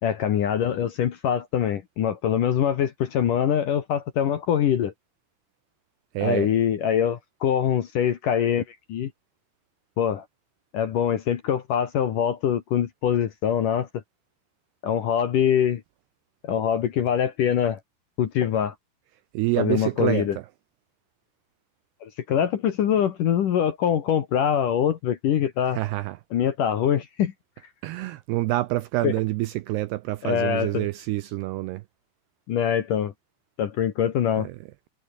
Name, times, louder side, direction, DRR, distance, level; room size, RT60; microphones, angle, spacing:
voice 1, 0.0-4.9 6.2-9.1 10.0-10.2 10.7-13.9 14.8-15.8 16.4-17.8 18.2-18.7 19.6-20.4 22.0-25.8 26.3-27.3 29.0-29.1 30.2-30.9 32.5-33.1 33.6-34.5, left 9 dB, 60° left, 2.4 m, -24 dB
voice 2, 6.1-6.5 19.3-20.4 25.7-26.2 27.8-31.8 34.4-34.6, right 17 dB, 80° right, 2.4 m, -27 dB
omnidirectional pair, 5.5 m